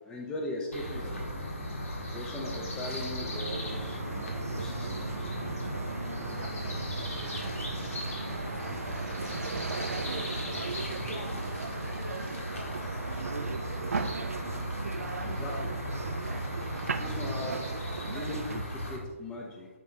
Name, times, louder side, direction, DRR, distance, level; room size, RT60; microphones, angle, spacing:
voice 1, 0.1-1.3 2.1-4.9 5.2-5.3 15.2-15.7 17.0-17.6 18.0-19.7, left 1 dB, 10° left, 0 dB, 0.6 m, -39 dB
sound 1, 0.7-19.0, equal, 75° left, 1.7 m, -37 dB
sound 2, 3.3-18.6, right 4 dB, 75° right, 0.5 m, -37 dB
voice 2, 6.3-10.7 11.1-13.0, left 3 dB, 50° left, 5 dB, 0.8 m, -50 dB
9.9 x 3.4 x 2.8 m, 1.4 s
figure-of-eight pair, 145°, 8 cm